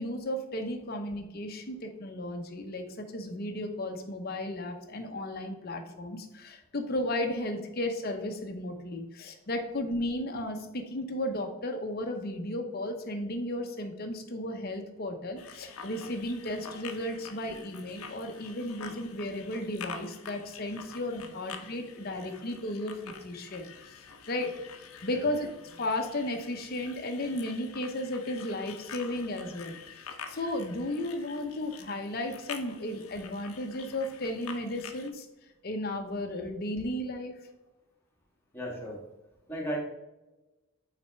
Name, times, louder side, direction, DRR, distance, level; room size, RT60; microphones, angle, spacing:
voice 1, 0.0-23.6 24.3-25.5 25.8-29.7 30.3-35.3 35.6-37.3, left 1 dB, 45° left, 4 dB, 0.8 m, -34 dB
sound 1, 15.4-35.1, left 6 dB, 80° left, 0.7 m, -47 dB
voice 2, 38.5-39.0 39.5-39.8, equal, 10° left, -3 dB, 1.5 m, -35 dB
6.0 x 4.2 x 4.4 m, 1.0 s
head